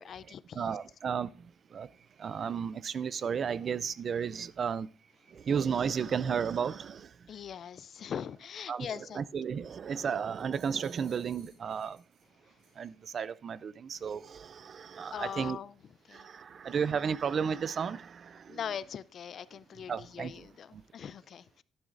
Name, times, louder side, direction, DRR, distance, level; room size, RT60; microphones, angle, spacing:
voice 1, 0.0-0.8 7.3-9.2 12.4-12.6 15.1-15.8 16.0-16.3 18.5-21.6, left 8 dB, 45° left, 0.3 m, -41 dB
voice 2, 0.6-1.9 2.2-4.9 5.3-7.3 8.7-8.9 9.1-12.0 12.8-15.6 16.1-18.6 19.9-20.5 20.7-20.8, right 7 dB, 40° right, 0.3 m, -33 dB
sound 1, 10.3-12.3 12.6-12.9, right 5 dB, 85° right, 5.2 m, -61 dB
11.0 x 10.5 x 2.5 m
cardioid pair, 160°, 0 cm